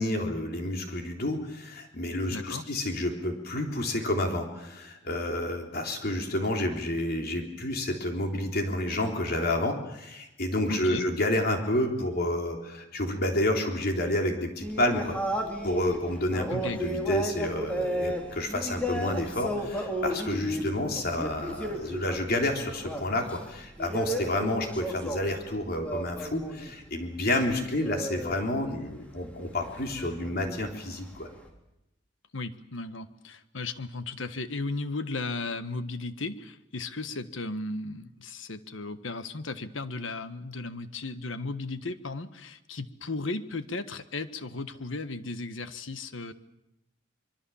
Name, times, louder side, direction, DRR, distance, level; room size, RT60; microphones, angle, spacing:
voice 1, 0.0-15.2 15.6-31.3, left 1 dB, 55° left, 2 dB, 3.6 m, -29 dB
voice 2, 2.3-2.6 10.7-11.1 16.5-16.8 32.3-46.3, left 3 dB, 85° left, 11 dB, 1.5 m, -35 dB
sound 1, 14.6-26.8 27.0-31.5, equal, 5° left, 3.5 m, -34 dB
25.0 x 23.5 x 7.2 m, 0.88 s
head